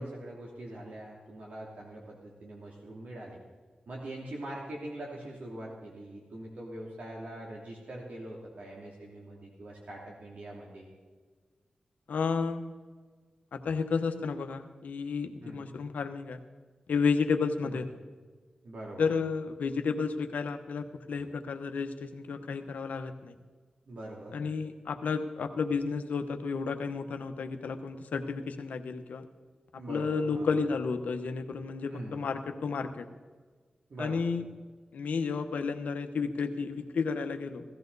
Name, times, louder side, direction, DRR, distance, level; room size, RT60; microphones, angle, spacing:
voice 1, 0.0-3.4 3.9-10.9 15.4-15.7 17.6-17.8 18.6-19.1 23.9-24.4 29.7-30.5 31.9-32.3 33.9-34.3, right 1 dB, 75° right, -2 dB, 2.7 m, -43 dB
voice 2, 12.1-12.6 13.5-16.4 16.9-17.8 19.0-23.3 24.3-29.2 29.9-33.1 34.0-34.4 34.9-37.6, left 5 dB, 90° left, 7 dB, 1.1 m, -32 dB
17.5 x 14.0 x 4.1 m, 1.4 s
cardioid pair, 55°, 3 cm